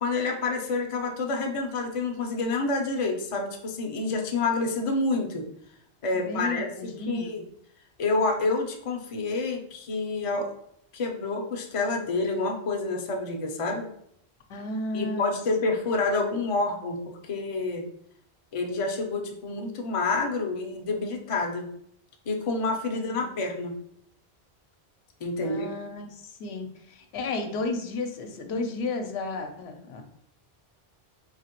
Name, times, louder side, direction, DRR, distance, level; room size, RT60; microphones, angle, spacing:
voice 1, 0.0-5.5 6.0-6.7 7.0-7.4 8.0-10.5 10.9-13.9 14.9-17.0 17.2-17.9 18.5-21.7 22.3-23.7 25.2-25.7, left 3 dB, 40° left, 2 dB, 0.5 m, -28 dB
voice 2, 6.1-7.4 14.5-15.3 22.9-23.4 25.4-30.0, left 2 dB, 85° left, 5 dB, 0.9 m, -33 dB
4.0 x 2.9 x 2.9 m, 0.69 s
omnidirectional pair, 1.1 m